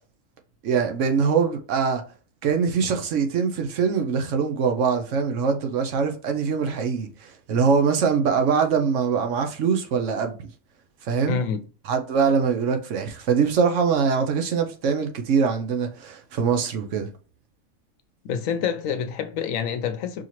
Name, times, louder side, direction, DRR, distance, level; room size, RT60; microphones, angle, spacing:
voice 1, 0.6-2.0 2.4-10.4 11.0-11.4 11.8-17.1, right 6 dB, 65° right, 1.0 m, -23 dB
voice 2, 11.3-11.6 18.2-20.2, left 7 dB, 75° left, 1.0 m, -27 dB
4.8 x 2.8 x 2.9 m
omnidirectional pair, 1.4 m